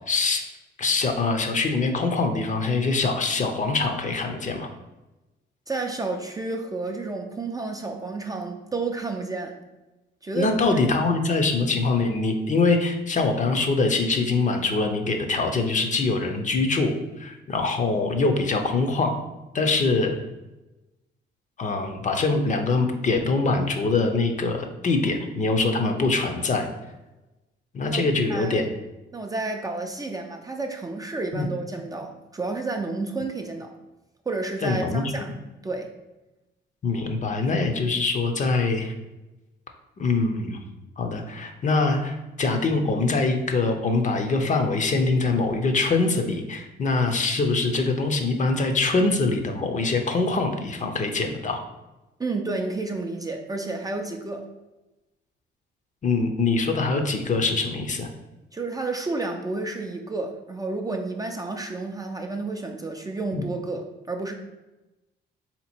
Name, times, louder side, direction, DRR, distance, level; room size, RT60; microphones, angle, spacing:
voice 1, 0.1-0.4 0.8-4.7 10.3-19.2 19.5-20.2 21.6-26.7 27.7-28.6 31.3-31.5 34.6-35.3 36.8-38.9 40.0-40.6 41.0-51.6 56.0-58.1 63.3-63.4, left 3 dB, 40° left, 5 dB, 0.6 m, -24 dB
voice 2, 5.7-9.6 10.2-10.6 27.8-28.0 28.3-28.7 29.1-33.7 34.3-35.4 35.6-35.9 52.2-54.5 58.5-64.3, right 3 dB, 20° right, 3 dB, 0.4 m, -31 dB
3.7 x 2.9 x 4.3 m, 1.0 s
cardioid pair, 90°, 20 cm